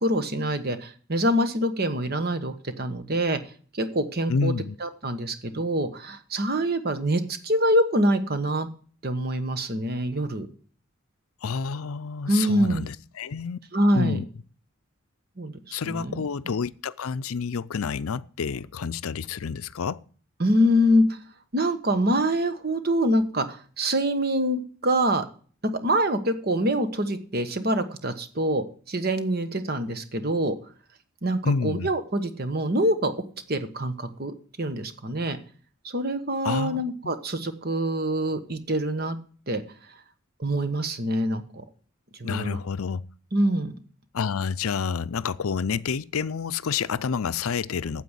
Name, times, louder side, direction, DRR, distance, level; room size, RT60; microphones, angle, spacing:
voice 1, 0.0-3.4 3.7-4.5 4.8-8.7 9.0-10.5 12.3-12.8 13.7-14.2 15.4-16.2 20.4-21.2 21.5-25.2 25.7-30.5 31.2-33.1 33.5-35.4 35.8-39.2 39.5-39.6 40.4-41.6 42.2-42.6 43.3-43.7, equal, 45° right, 1.3 m, -25 dB
voice 2, 4.3-4.8 11.4-13.6 13.9-14.2 15.7-20.0 31.4-31.9 36.4-37.1 42.2-43.0 44.1-48.0, left 5 dB, 80° left, 0.5 m, -29 dB
9.3 x 7.8 x 8.2 m
head